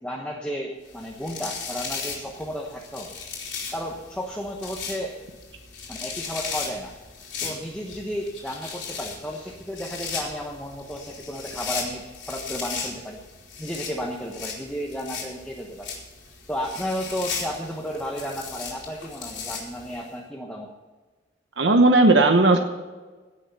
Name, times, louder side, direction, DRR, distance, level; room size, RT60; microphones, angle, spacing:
voice 1, 0.0-3.2 3.7-5.2 5.9-6.9 7.4-13.2 13.6-15.9 16.5-20.8, equal, 5° left, -1 dB, 1.0 m, -33 dB
sound 1, 0.9-20.1, left 5 dB, 85° left, 3.7 m, -37 dB
voice 2, 21.6-22.6, right 2 dB, 80° right, 5 dB, 1.1 m, -16 dB
17.0 x 6.5 x 6.8 m, 1.3 s
head